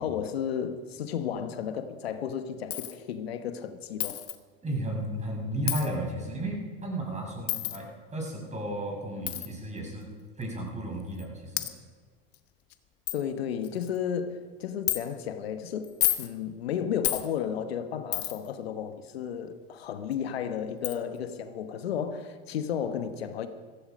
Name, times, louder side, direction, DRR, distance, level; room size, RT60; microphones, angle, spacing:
voice 1, 0.0-4.2 13.1-15.9 16.2-23.5, left 8 dB, 90° left, 10 dB, 1.1 m, -33 dB
Coin (dropping), 2.7-3.0 4.0-4.4 5.7-5.9 7.5-7.8 9.3-9.5 10.4-10.5 11.2-11.3 11.6-11.7 12.3-12.4 12.7-12.8 13.1-13.2 13.6-14.0 14.9-15.0 15.8-16.3 17.0-17.3 18.1-18.5 20.1-20.2 20.8-21.0, left 15 dB, 50° left, 1.3 m, -29 dB
voice 2, 4.6-10.1 10.4-11.7, right 1 dB, 25° right, 0 dB, 6.0 m, -34 dB
15.5 x 15.5 x 5.2 m, 1.5 s
hypercardioid pair, 90°, 30 cm